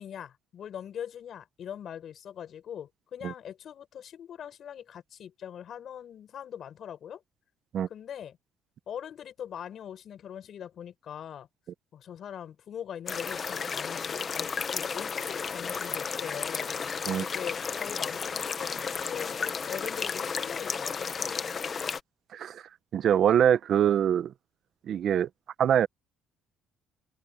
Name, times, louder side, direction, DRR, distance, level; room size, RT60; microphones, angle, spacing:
voice 1, 0.0-7.2 7.9-8.4 8.9-11.5 11.9-16.8 17.2-19.4 19.7-21.3, left 9 dB, 50° left, 5.8 m, -42 dB
sound 1, 13.1-22.0, left 6 dB, 35° left, 0.9 m, -33 dB
voice 2, 22.3-22.6 22.9-24.3 24.9-25.3 25.6-25.9, right 9 dB, 55° right, 0.8 m, -23 dB
open air
cardioid pair, 125°, 0 cm